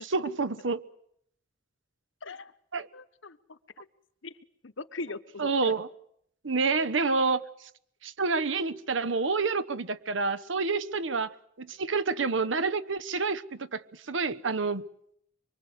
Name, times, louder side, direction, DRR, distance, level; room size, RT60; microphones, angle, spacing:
voice 1, 0.0-0.8 2.7-2.9 5.4-5.9 6.4-7.4 8.0-14.8, right 4 dB, 80° right, 13 dB, 1.1 m, -28 dB
voice 2, 2.2-2.5 2.9-3.6 4.2-4.4 4.6-5.7, left 3 dB, 80° left, 12 dB, 1.2 m, -40 dB
24.5 x 24.5 x 8.2 m, 0.71 s
head